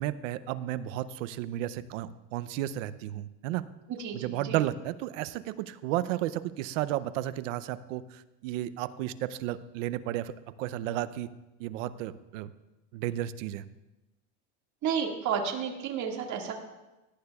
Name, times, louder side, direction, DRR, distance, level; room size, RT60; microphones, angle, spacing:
voice 1, 0.0-3.6 4.1-10.3 10.6-11.3 11.6-12.5 12.9-13.6, right 13 dB, 85° right, 15 dB, 0.7 m, -33 dB
voice 2, 4.0-4.6 14.8-16.5, right 7 dB, 50° right, 1 dB, 2.0 m, -31 dB
17.5 x 11.5 x 2.3 m, 1.0 s
supercardioid pair, 110°, 37 cm